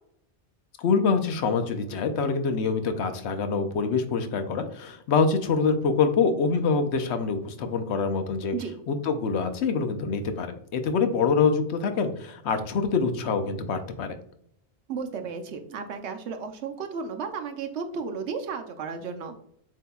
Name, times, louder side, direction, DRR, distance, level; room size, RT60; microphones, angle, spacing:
voice 1, 0.8-8.6 8.9-14.2, left 5 dB, 75° left, 7 dB, 0.9 m, -25 dB
voice 2, 14.9-19.3, right 5 dB, 75° right, 6 dB, 1.0 m, -34 dB
7.6 x 2.8 x 2.2 m, 0.69 s
omnidirectional pair, 1.2 m